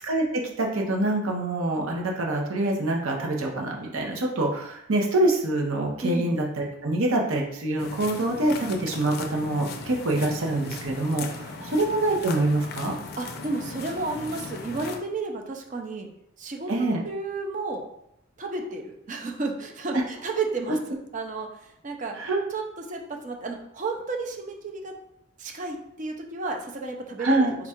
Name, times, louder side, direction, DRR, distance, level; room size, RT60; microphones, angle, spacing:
voice 1, 0.0-12.9 16.7-17.0 22.2-22.4 27.2-27.5, right 2 dB, 85° right, 0 dB, 0.9 m, -25 dB
voice 2, 6.0-6.3 11.6-11.8 13.2-16.1 16.4-17.8 18.4-22.2 22.5-24.9 25.4-27.5, right 3 dB, 40° right, 2 dB, 0.5 m, -32 dB
sound 1, 7.8-15.0, left 4 dB, 50° left, 0.4 m, -38 dB
3.7 x 2.4 x 4.3 m, 0.76 s
head